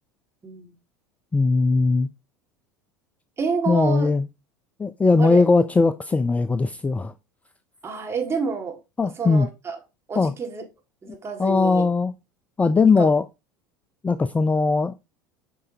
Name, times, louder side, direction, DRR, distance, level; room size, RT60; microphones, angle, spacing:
voice 1, 0.4-0.8 3.4-4.1 5.2-5.4 7.8-9.8 10.1-10.6 11.0-11.9 13.0-13.1, right 5 dB, 25° right, 1.8 m, -29 dB
voice 2, 1.3-2.1 3.7-4.2 4.8-7.1 9.0-9.5 10.2-10.3 11.4-12.1 12.6-13.2 14.0-14.9, left 3 dB, 15° left, 0.4 m, -19 dB
8.4 x 4.9 x 2.7 m
figure-of-eight pair, 75°, 11 cm